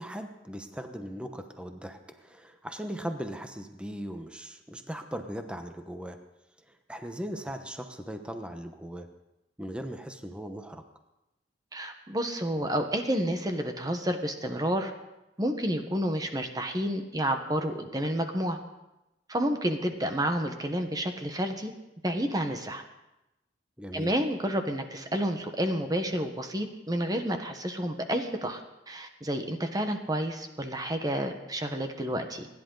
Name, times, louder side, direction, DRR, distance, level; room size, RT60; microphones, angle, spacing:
voice 1, 0.0-6.2 6.7-9.1 9.6-10.8 23.8-24.1, equal, 5° right, 6 dB, 1.0 m, -39 dB
voice 2, 11.7-14.9 15.4-18.6 19.3-21.7 22.0-22.8 23.9-28.6 28.9-32.5, equal, 20° right, 6 dB, 1.2 m, -30 dB
28.0 x 10.5 x 3.9 m, 0.94 s
head